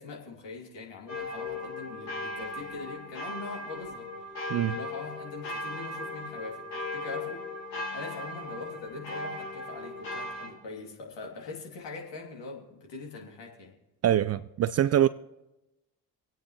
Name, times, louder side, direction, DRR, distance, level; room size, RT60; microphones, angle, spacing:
voice 1, 0.0-4.3 4.7-7.4 7.9-13.7, left 4 dB, 60° left, 2.9 m, -42 dB
sound 1, 1.1-10.5, left 2 dB, 85° left, 2.0 m, -38 dB
voice 2, 14.0-15.1, right 11 dB, 35° right, 0.4 m, -24 dB
25.5 x 8.9 x 3.2 m
figure-of-eight pair, 40°, 49 cm